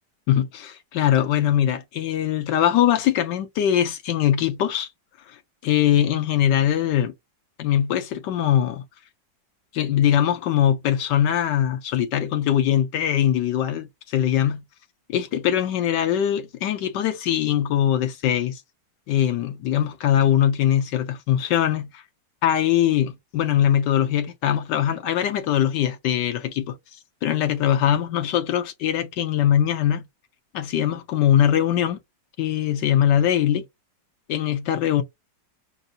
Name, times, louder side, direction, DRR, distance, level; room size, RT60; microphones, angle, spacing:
voice 1, 0.3-4.9 5.3-7.1 7.6-8.8 9.7-14.6 15.1-18.6 19.1-22.0 22.4-30.0 30.5-32.0 32.4-33.6 34.3-35.0, left 10 dB, 75° left, 1.2 m, -22 dB
5.5 x 2.6 x 2.3 m
omnidirectional pair, 2.0 m